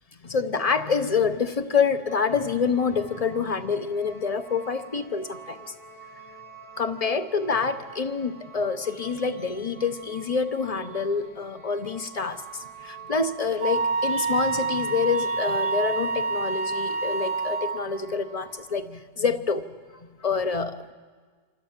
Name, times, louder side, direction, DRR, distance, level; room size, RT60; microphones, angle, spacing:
voice 1, 0.2-5.7 6.8-19.7 20.0-20.9, left 5 dB, 30° left, 9 dB, 0.9 m, -27 dB
sound 1, 2.1-18.6, right 6 dB, 70° left, 4.8 m, -46 dB
Wind instrument woodwind instrument, 13.6-17.8, right 4 dB, 70° right, 1.8 m, -27 dB
28.0 x 25.0 x 7.5 m, 1.5 s
omnidirectional pair, 1.7 m